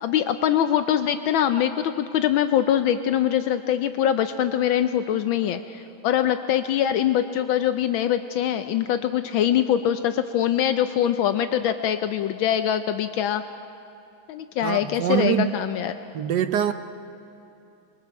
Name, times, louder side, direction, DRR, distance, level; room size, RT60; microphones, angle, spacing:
voice 1, 0.0-13.4 14.3-15.9, left 10 dB, 75° left, 9 dB, 1.4 m, -23 dB
voice 2, 14.6-15.5 16.1-16.7, right 10 dB, 65° right, 9 dB, 1.2 m, -24 dB
25.5 x 22.5 x 4.7 m, 2.8 s
omnidirectional pair, 2.2 m